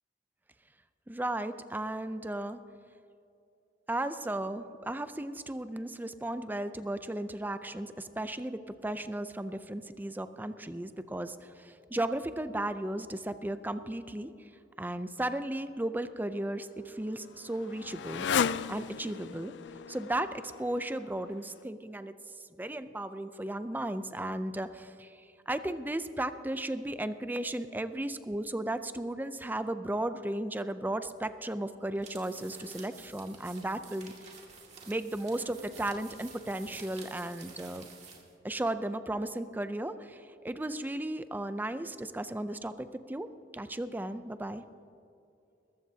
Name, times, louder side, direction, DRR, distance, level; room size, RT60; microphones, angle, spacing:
voice 1, 1.1-2.6 3.9-14.3 14.8-18.3 18.7-19.5 19.9-22.2 22.6-25.2 25.5-34.1 34.9-37.8 38.4-43.3 43.5-44.6, right 1 dB, 10° right, 11 dB, 0.5 m, -35 dB
Motorcycle, 16.2-21.6, left 7 dB, 75° left, 0.4 m, -36 dB
sound 1, 32.0-38.3, right 5 dB, 40° right, 2.2 m, -51 dB
21.5 x 14.5 x 2.8 m, 2.6 s
head